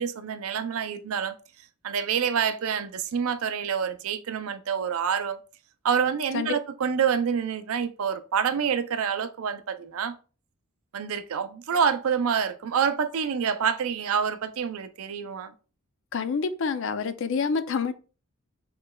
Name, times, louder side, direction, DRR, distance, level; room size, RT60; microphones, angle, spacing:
voice 1, 0.0-1.4 1.8-5.4 5.8-10.2 10.9-15.5, right 7 dB, 70° right, 0.4 m, -27 dB
voice 2, 16.1-17.9, left 5 dB, 55° left, 0.4 m, -27 dB
6.7 x 3.1 x 2.2 m
head